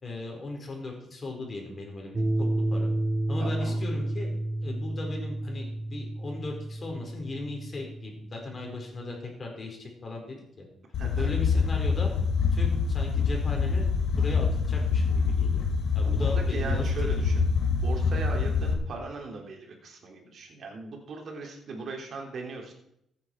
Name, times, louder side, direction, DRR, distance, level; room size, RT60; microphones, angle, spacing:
voice 1, 0.0-2.9 3.3-4.3 4.6-10.7 11.2-12.1 12.5-13.9 14.2-15.6 15.9-17.4, left 2 dB, 35° left, 1 dB, 4.5 m, -37 dB
sound 1, 2.1-9.2, right 1 dB, 25° right, 1.3 m, -31 dB
voice 2, 3.4-3.8 11.0-11.3 16.0-17.4 17.8-22.7, right 3 dB, 55° right, 1 dB, 3.4 m, -38 dB
sound 2, 10.9-18.7, left 5 dB, 70° left, 1.9 m, -25 dB
15.0 x 8.8 x 4.7 m, 0.76 s
cardioid pair, 90°, 0 cm